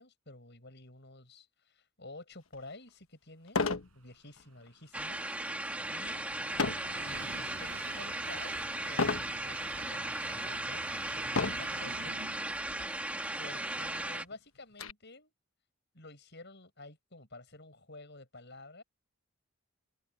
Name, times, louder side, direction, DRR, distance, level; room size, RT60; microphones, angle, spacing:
voice 1, 0.0-3.6 3.9-5.2 5.9-6.3 7.0-8.5 8.8-12.2 13.4-15.3 15.9-18.8, left 2 dB, 55° left, 7.8 m, -51 dB
sound 1, 2.5-2.6 3.5-3.9 4.4-4.7 6.6-7.0 7.6-8.0 9.0-9.3 10.1-10.2 11.3-11.8 12.8-12.9 13.2-13.3 13.8-14.9, left 4 dB, 75° left, 1.2 m, -32 dB
Train, 4.4-13.8, right 5 dB, 90° right, 7.5 m, -48 dB
sound 2, 4.9-14.3, right 1 dB, 5° right, 1.5 m, -37 dB
head